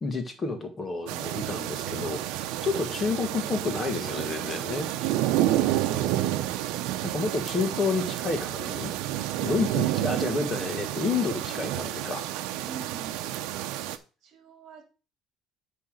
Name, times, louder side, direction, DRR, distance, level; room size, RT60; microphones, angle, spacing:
voice 1, 0.0-5.1 7.0-8.9 9.4-12.3, left 4 dB, 20° left, 6 dB, 1.7 m, -30 dB
sound 1, 1.1-14.0, right 13 dB, 85° right, 0.8 m, -30 dB
voice 2, 5.4-6.1 12.6-13.4 14.2-14.8, right 5 dB, 45° right, 4 dB, 2.8 m, -45 dB
9.6 x 3.4 x 6.6 m, 0.33 s
cardioid pair, 155°, 0 cm